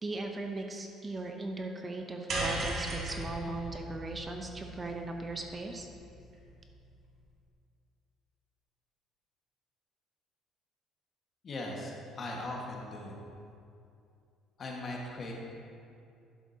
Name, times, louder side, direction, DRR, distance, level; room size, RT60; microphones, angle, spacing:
voice 1, 0.0-5.9, right 2 dB, 25° right, 3 dB, 0.7 m, -38 dB
sound 1, 2.3-6.7, right 1 dB, 50° right, 1.8 m, -38 dB
voice 2, 11.4-13.2 14.6-15.3, left 2 dB, 40° left, -1 dB, 1.5 m, -39 dB
11.0 x 7.2 x 2.8 m, 2.5 s
cardioid pair, 100°, 0 cm